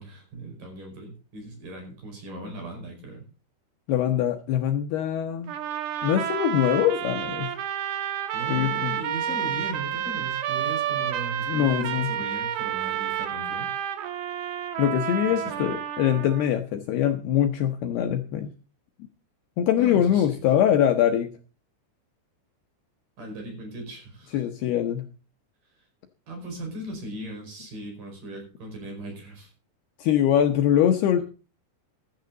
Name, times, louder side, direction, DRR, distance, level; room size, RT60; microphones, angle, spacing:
voice 1, 0.0-3.2 8.3-13.7 15.3-15.8 19.8-20.4 23.2-24.5 26.3-29.5 31.1-31.2, right 2 dB, 45° right, 4 dB, 6.3 m, -38 dB
voice 2, 3.9-5.6 6.0-7.5 8.5-8.9 11.5-12.1 14.8-18.5 19.6-21.3 24.3-25.1 30.0-31.2, left 10 dB, 75° left, 5 dB, 2.6 m, -23 dB
sound 1, 5.5-16.5, right 10 dB, 65° right, 2.9 m, -30 dB
16.0 x 12.0 x 3.9 m, 0.36 s
omnidirectional pair, 5.4 m